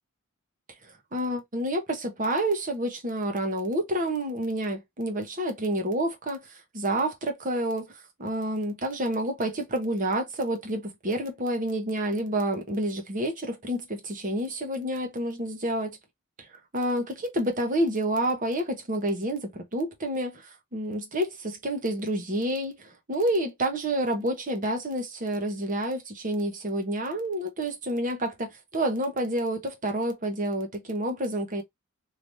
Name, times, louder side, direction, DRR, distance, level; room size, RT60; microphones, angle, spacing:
voice 1, 1.1-6.4 6.7-7.9 8.2-16.0 16.7-20.4 20.7-31.6, right 1 dB, 35° right, 1.0 m, -29 dB
3.3 x 3.0 x 2.6 m
head